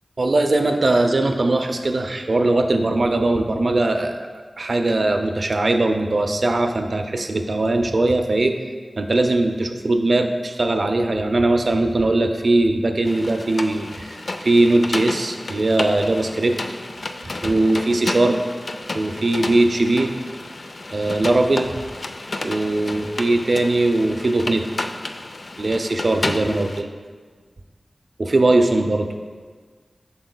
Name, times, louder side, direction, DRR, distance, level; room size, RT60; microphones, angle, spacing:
voice 1, 0.2-4.2 4.6-8.5 9.0-16.6 17.4-18.4 18.9-20.1 20.9-21.7 22.4-24.7 25.6-26.9 28.2-29.1, right 2 dB, 65° right, 6 dB, 0.5 m, -20 dB
sound 1, 13.1-26.8, left 2 dB, 65° left, 0.4 m, -31 dB
7.8 x 5.7 x 2.2 m, 1.5 s
cardioid pair, 45°, 0 cm